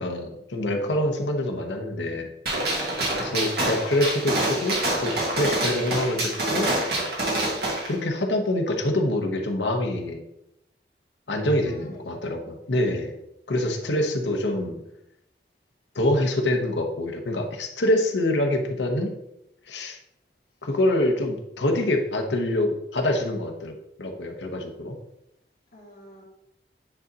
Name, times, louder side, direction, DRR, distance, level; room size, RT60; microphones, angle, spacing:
voice 1, 0.0-2.3 3.2-6.7 7.9-10.2 11.3-13.1 13.5-14.8 15.9-19.1 19.7-20.0 20.6-25.0, left 1 dB, 85° left, 3 dB, 1.0 m, -25 dB
Gunshot gunfire, 2.5-7.9, right 1 dB, 65° right, 1.8 m, -26 dB
voice 2, 3.0-3.3 11.6-12.3 13.5-14.2 25.7-26.3, left 1 dB, 55° left, -5 dB, 2.3 m, -47 dB
9.0 x 4.0 x 2.9 m, 0.82 s
head